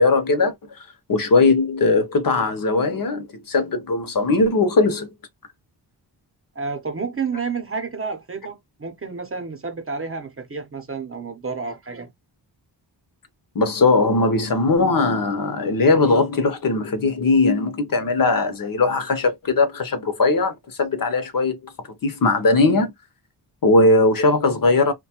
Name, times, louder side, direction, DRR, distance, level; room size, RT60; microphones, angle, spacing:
voice 1, 0.0-5.1 13.5-21.7 22.0-22.9 23.6-24.9, left 3 dB, 50° left, 0.7 m, -19 dB
voice 2, 6.5-12.1, right 5 dB, 30° right, 0.7 m, -30 dB
2.7 x 2.2 x 2.8 m
wide cardioid pair, 130°, 43 cm